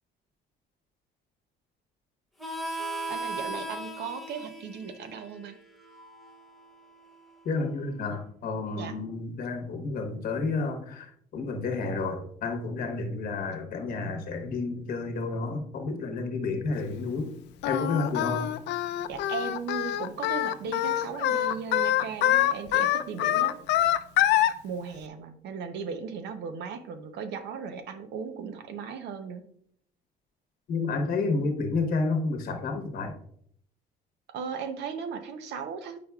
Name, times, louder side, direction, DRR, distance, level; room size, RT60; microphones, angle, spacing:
Harmonica, 2.4-7.7, right 2 dB, ahead, 0.7 m, -38 dB
voice 1, 3.1-5.6 8.7-9.0 19.0-23.5 24.6-29.4 34.3-36.0, right 6 dB, 70° right, 8 dB, 0.7 m, -37 dB
voice 2, 7.4-17.3 17.6-18.5 30.7-33.1, left 3 dB, 55° left, 5 dB, 1.0 m, -30 dB
Singing, 17.6-24.5, left 13 dB, 75° left, 0.4 m, -25 dB
8.0 x 5.0 x 2.3 m, 0.66 s
cardioid pair, 140°, 18 cm